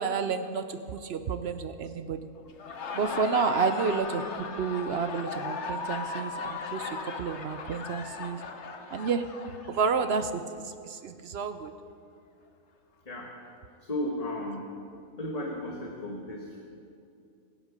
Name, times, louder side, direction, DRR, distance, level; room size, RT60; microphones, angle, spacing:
voice 1, 0.0-2.3 2.9-4.2 4.6-8.4 8.9-9.2 9.7-11.7, right 5 dB, 60° right, 9 dB, 0.7 m, -30 dB
Laughter, 2.5-10.1, left 4 dB, 55° left, 1.2 m, -37 dB
voice 2, 13.8-14.6 15.2-16.6, left 1 dB, 30° left, -1 dB, 1.3 m, -34 dB
23.0 x 8.1 x 5.1 m, 2.5 s
omnidirectional pair, 1.5 m